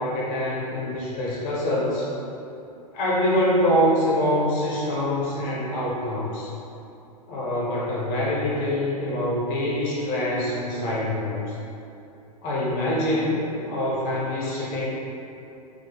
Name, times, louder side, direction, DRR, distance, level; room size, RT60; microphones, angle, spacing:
voice 1, 0.0-2.1 2.9-6.5 7.3-11.5 12.4-14.9, left 1 dB, 40° left, -6 dB, 0.7 m, -25 dB
3.2 x 2.2 x 2.9 m, 2.8 s
hypercardioid pair, 100°, 20 cm